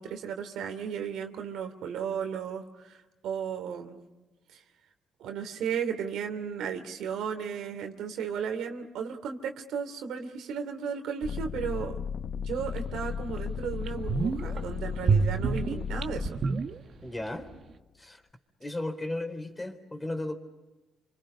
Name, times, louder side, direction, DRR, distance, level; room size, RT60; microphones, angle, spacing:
voice 1, 0.0-3.0 3.2-4.0 4.5-4.6 5.2-12.0 12.3-16.4, right 7 dB, 80° right, 6 dB, 3.0 m, -35 dB
sound 1, 11.2-16.3 17.0-17.7, left 7 dB, 60° left, 1.0 m, -35 dB
sound 2, 12.8-12.9 13.3-13.4 13.8-14.6 15.0-17.3 17.5-17.6, right 5 dB, 50° right, 1.7 m, -28 dB
voice 2, 17.0-17.5 18.0-18.2 18.6-20.4, left 1 dB, 15° left, 7 dB, 3.8 m, -35 dB
29.5 x 25.5 x 5.6 m, 1.1 s
cardioid pair, 90°, 0 cm